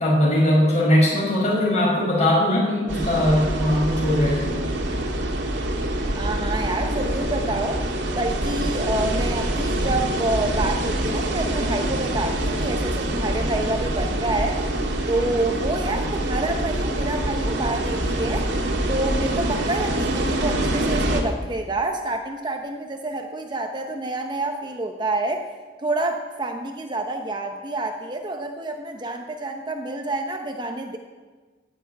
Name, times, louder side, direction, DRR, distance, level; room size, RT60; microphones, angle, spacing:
voice 1, 0.0-4.5, left 1 dB, 40° left, -3 dB, 5.8 m, -20 dB
sound 1, 2.9-21.2, right 1 dB, 75° right, 2.1 m, -25 dB
voice 2, 6.2-7.8 8.1-14.6 15.1-18.5 18.9-25.5 25.8-31.0, right 2 dB, 25° right, 4 dB, 0.9 m, -28 dB
16.5 x 7.2 x 9.1 m, 1.4 s
head